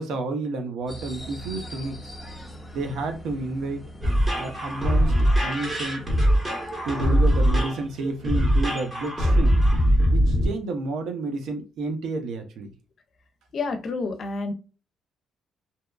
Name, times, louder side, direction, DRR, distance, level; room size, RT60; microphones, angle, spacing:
voice 1, 0.0-2.1 2.7-3.8 4.3-5.1 5.4-6.0 6.8-9.6 10.1-12.7, right 3 dB, 80° right, 5 dB, 0.6 m, -30 dB
sound 1, 0.9-10.8, equal, 10° left, 0.6 m, -44 dB
sound 2, 4.0-10.5, equal, 25° right, 1.1 m, -21 dB
voice 2, 13.5-14.5, left 3 dB, 55° left, 7 dB, 0.6 m, -29 dB
2.7 x 2.2 x 2.3 m, 0.34 s
cardioid pair, 90°, 0 cm